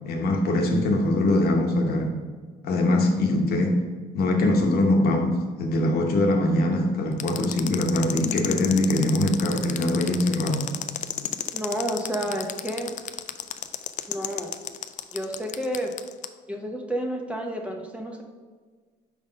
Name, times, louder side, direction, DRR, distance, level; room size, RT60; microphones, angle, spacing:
voice 1, 0.1-2.1 2.6-3.8 4.1-10.7, left 1 dB, 65° left, 2 dB, 1.0 m, -22 dB
sound 1, 7.2-16.3, left 10 dB, 45° left, 0.4 m, -32 dB
voice 2, 11.5-12.9 14.1-14.5 15.1-15.9 16.5-18.2, right 1 dB, 5° right, 1 dB, 0.8 m, -30 dB
5.2 x 3.9 x 5.2 m, 1.5 s
cardioid pair, 110°, 17 cm